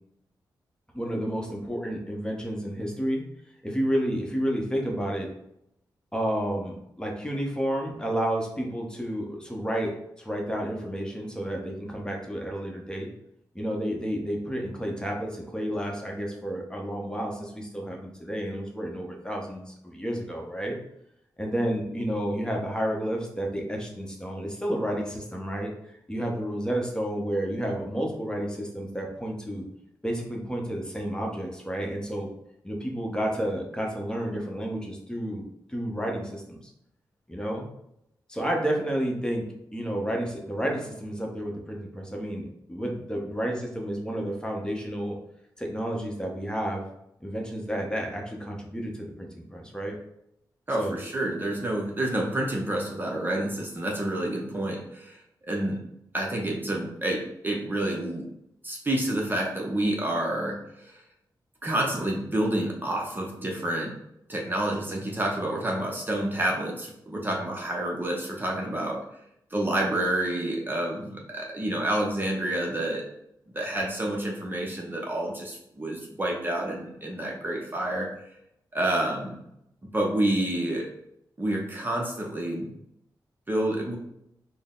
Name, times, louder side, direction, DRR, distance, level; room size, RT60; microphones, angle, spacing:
voice 1, 0.9-3.2 3.6-5.3 6.1-13.1 13.5-20.7 21.4-29.7 30.0-32.3 32.6-36.6 37.3-37.6 38.3-39.5 39.7-45.2 45.6-46.8 47.2-50.0 50.8-51.0, equal, 10° left, 0 dB, 0.8 m, -31 dB
voice 2, 50.7-55.2 55.5-55.8 56.1-58.3 58.6-61.0 61.6-63.9 64.3-69.0 69.5-73.0 73.5-78.1 78.7-79.4 79.8-80.9 81.4-82.7 83.5-84.0, right 1 dB, 25° right, -1 dB, 0.7 m, -28 dB
3.8 x 2.1 x 3.7 m, 0.79 s
cardioid pair, 65°, 8 cm